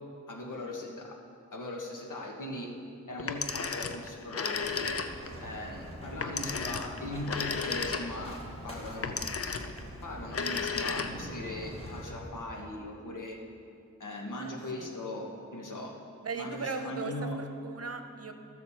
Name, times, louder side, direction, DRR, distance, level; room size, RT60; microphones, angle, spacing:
voice 1, 0.3-1.1 1.5-2.7 3.1-5.0 5.4-9.3 10.0-13.4 14.0-15.9 16.3-17.4, left 1 dB, 80° left, -1 dB, 1.5 m, -39 dB
Telephone, 3.2-5.4 6.2-8.4 9.0-9.8 10.2-11.4, left 5 dB, 50° left, 0.6 m, -34 dB
sound 1, 4.5-12.1, equal, 20° left, 1.9 m, -44 dB
voice 2, 14.4-14.9 16.2-18.3, right 4 dB, 50° right, 6 dB, 0.9 m, -38 dB
14.0 x 6.6 x 4.2 m, 2.5 s
wide cardioid pair, 75°, 31 cm